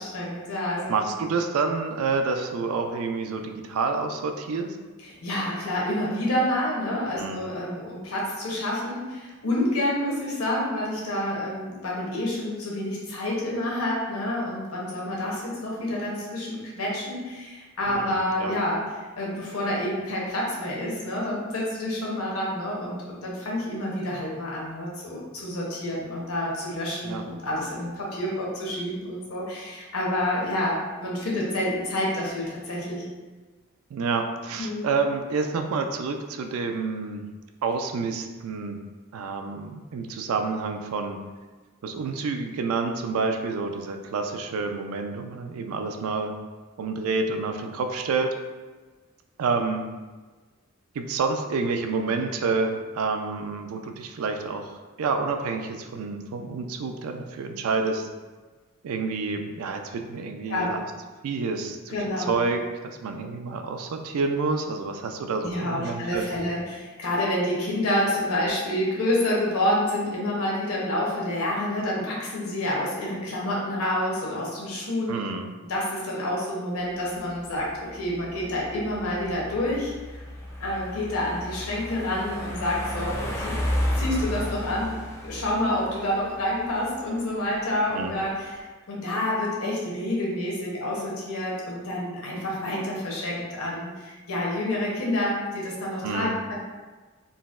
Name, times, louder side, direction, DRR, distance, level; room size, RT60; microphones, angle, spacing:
voice 1, 0.0-0.9 5.0-18.8 19.2-33.0 34.6-34.9 60.5-60.7 61.9-62.3 65.4-75.1 75.6-79.9 80.6-83.6 83.9-85.0 85.2-96.5, left 1 dB, 80° left, -4 dB, 0.8 m, -28 dB
voice 2, 0.9-4.8 7.2-7.5 17.9-18.5 27.0-27.2 33.9-37.3 37.6-38.8 39.1-41.2 41.8-46.3 46.8-48.3 49.4-49.8 50.9-58.1 58.8-60.8 61.2-61.9 62.3-66.2 75.1-75.5 87.9-88.3 96.0-96.4, right 4 dB, 75° right, 5 dB, 0.3 m, -28 dB
sound 1, 76.9-88.6, left 1 dB, 10° left, 0.4 m, -33 dB
3.9 x 2.0 x 2.4 m, 1.3 s
head